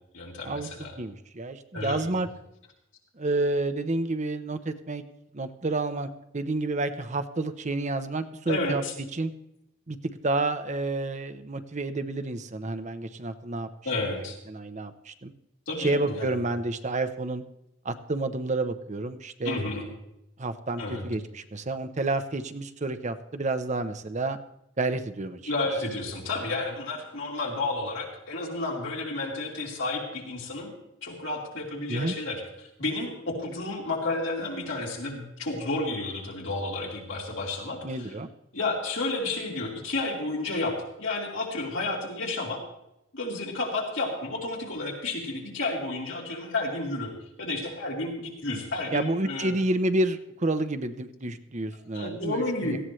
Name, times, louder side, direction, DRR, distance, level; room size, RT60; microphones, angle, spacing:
voice 1, 0.1-0.9 1.7-2.0 8.5-8.9 13.9-14.4 15.7-16.3 19.4-19.8 20.8-21.0 25.5-30.7 31.0-32.4 32.8-38.1 38.5-42.6 43.1-47.1 47.4-49.5 51.9-52.8, left 2 dB, 75° left, -2 dB, 3.6 m, -31 dB
voice 2, 1.0-2.3 3.1-5.0 5.3-8.8 9.1-9.3 9.9-10.0 10.2-13.7 14.1-15.3 15.8-17.4 17.8-19.6 20.4-24.4 24.8-25.5 31.9-32.1 37.8-38.3 48.9-52.8, right 2 dB, 40° right, 9 dB, 0.8 m, -29 dB
18.0 x 14.0 x 3.2 m, 0.84 s
head